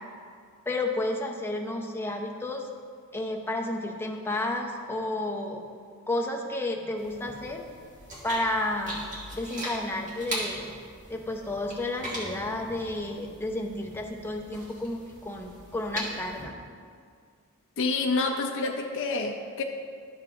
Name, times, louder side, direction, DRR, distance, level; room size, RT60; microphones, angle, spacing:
voice 1, 0.7-2.7 3.1-5.6 6.1-7.6 8.2-9.0 9.3-10.7 11.1-16.5, left 2 dB, 10° left, 1 dB, 0.6 m, -31 dB
sound 1, 7.0-16.5, right 1 dB, 35° right, 1.5 m, -40 dB
voice 2, 17.8-19.6, left 3 dB, 60° left, 2 dB, 0.5 m, -28 dB
11.5 x 6.6 x 2.5 m, 2.1 s
head